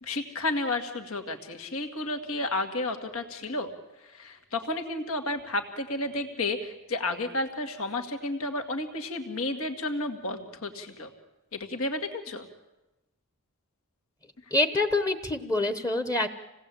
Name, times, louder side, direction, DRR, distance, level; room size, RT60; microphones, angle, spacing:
voice 1, 0.0-3.7 4.1-11.1 11.5-12.4, left 2 dB, 80° left, 6 dB, 2.3 m, -32 dB
voice 2, 14.5-16.3, left 2 dB, 15° left, 9 dB, 1.0 m, -26 dB
27.5 x 18.5 x 8.5 m, 1.0 s
head